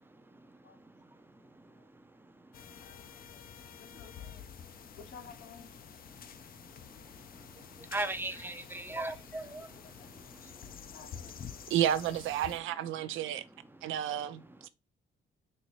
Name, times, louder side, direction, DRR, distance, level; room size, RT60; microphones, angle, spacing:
voice 1, 0.0-4.0 4.6-5.0 6.1-10.9 11.6-11.7 13.8-13.9 14.6-14.7, right 2 dB, 10° right, 0.5 m, -43 dB
sound 1, 2.5-12.6, left 8 dB, 50° left, 0.5 m, -49 dB
voice 2, 3.8-4.5 4.9-5.8 8.3-9.5 10.9-11.3 12.1-12.3 13.1-13.2, left 5 dB, 80° left, 1.1 m, -54 dB
voice 3, 11.7-13.4 13.8-14.7, right 11 dB, 85° right, 0.5 m, -31 dB
4.1 x 2.7 x 3.0 m
cardioid pair, 90°, 20 cm